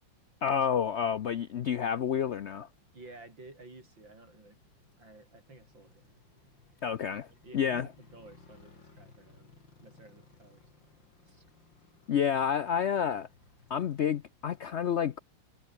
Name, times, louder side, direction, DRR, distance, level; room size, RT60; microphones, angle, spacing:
voice 1, 0.4-2.7 6.8-7.3 7.5-7.9 12.1-13.3 13.7-15.2, left 8 dB, 70° left, 0.6 m, -29 dB
Motorcycle, 1.4-14.0, left 4 dB, 90° left, 4.6 m, -61 dB
voice 2, 2.9-4.6 5.0-6.2 7.4-10.7, right 2 dB, 85° right, 7.9 m, -53 dB
omnidirectional pair, 2.0 m